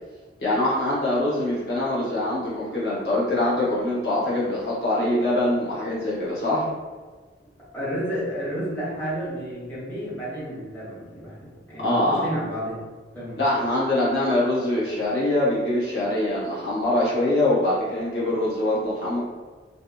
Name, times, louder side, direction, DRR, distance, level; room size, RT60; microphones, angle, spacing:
voice 1, 0.4-6.7 11.8-12.2 13.4-19.2, left 1 dB, 65° left, -8 dB, 0.7 m, -23 dB
voice 2, 7.7-12.9 13.1-13.4, equal, 10° left, -10 dB, 1.2 m, -31 dB
2.7 x 2.7 x 2.3 m, 1.4 s
head